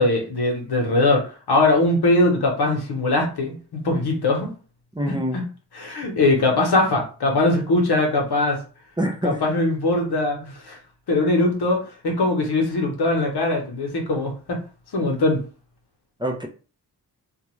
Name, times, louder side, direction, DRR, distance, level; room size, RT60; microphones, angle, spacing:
voice 1, 0.0-4.5 5.1-5.4 5.7-8.6 9.2-10.8 11.1-14.6 14.9-15.4, left 2 dB, 70° left, 1 dB, 1.0 m, -21 dB
voice 2, 4.9-5.4 9.0-9.4 16.2-16.5, right 1 dB, 10° right, 1 dB, 0.5 m, -25 dB
2.4 x 2.3 x 3.0 m, 0.37 s
cardioid pair, 65°, 40 cm